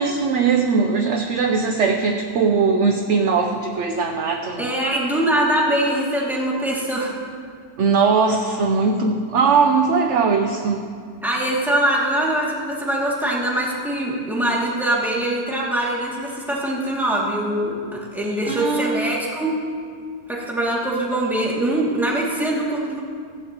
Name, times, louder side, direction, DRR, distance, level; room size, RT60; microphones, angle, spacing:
voice 1, 0.0-4.7 7.8-10.9 18.4-19.1, right 5 dB, 60° right, 4 dB, 0.8 m, -20 dB
voice 2, 4.6-7.1 11.2-19.5 20.3-23.0, right 1 dB, ahead, -5 dB, 2.2 m, -23 dB
15.5 x 15.5 x 3.0 m, 2.1 s
omnidirectional pair, 1.8 m